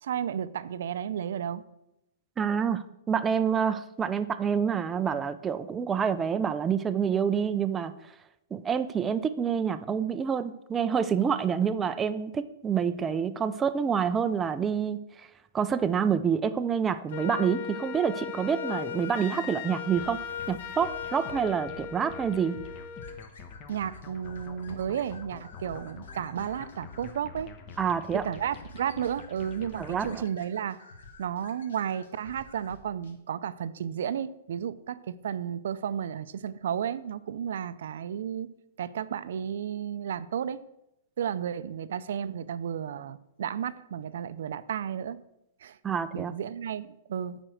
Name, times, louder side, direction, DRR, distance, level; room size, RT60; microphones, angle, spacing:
voice 1, 0.0-1.6 23.7-27.5 28.2-30.9 31.2-38.5 38.8-40.6 41.2-45.2 45.6-45.8 46.1-47.4, right 9 dB, 75° right, 14 dB, 0.5 m, -33 dB
voice 2, 2.4-8.1 8.5-15.3 15.5-20.2 20.5-22.6 27.8-28.3 29.8-30.2 45.8-46.3, right 7 dB, 15° right, 10 dB, 0.3 m, -27 dB
Wind instrument woodwind instrument, 17.1-23.2, left 9 dB, 60° left, 0.7 m, -37 dB
sound 1, 20.0-30.3, left 4 dB, 30° left, 0.9 m, -47 dB
sound 2, 23.0-33.2, left 4 dB, 85° left, 1.4 m, -51 dB
9.1 x 4.4 x 6.3 m, 0.86 s
hypercardioid pair, 155°, 0 cm